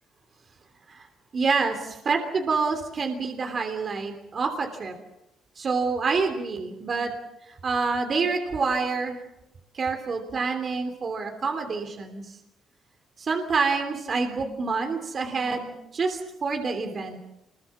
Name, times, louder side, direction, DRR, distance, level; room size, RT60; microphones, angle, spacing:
voice 1, 1.3-5.0 5.5-7.1 7.5-9.2 9.7-12.4 13.2-17.2, right 4 dB, 45° right, 5 dB, 3.2 m, -27 dB
26.0 x 22.0 x 7.3 m, 0.88 s
cardioid pair, 90°, 0 cm